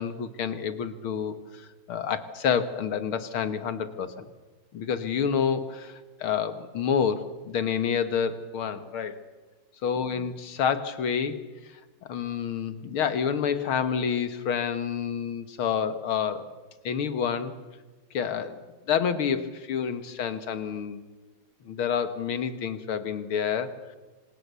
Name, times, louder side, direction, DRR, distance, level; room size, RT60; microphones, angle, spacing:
voice 1, 0.0-1.6 1.9-4.3 4.7-9.2 9.8-11.4 12.0-16.5 16.8-17.5 18.1-18.6 18.9-21.0 21.7-23.8, left 7 dB, 90° left, 11 dB, 2.4 m, -28 dB
28.0 x 25.5 x 7.0 m, 1.2 s
omnidirectional pair, 2.2 m